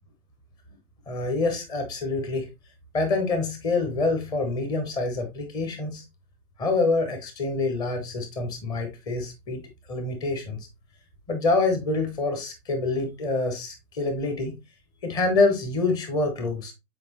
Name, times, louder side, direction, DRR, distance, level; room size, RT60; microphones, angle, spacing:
voice 1, 1.1-2.5 2.9-6.0 6.6-9.6 9.9-10.6 11.3-14.6 15.0-16.7, left 3 dB, 10° left, 0.8 m, -26 dB
7.8 x 4.5 x 2.9 m
hypercardioid pair, 140°, 47 cm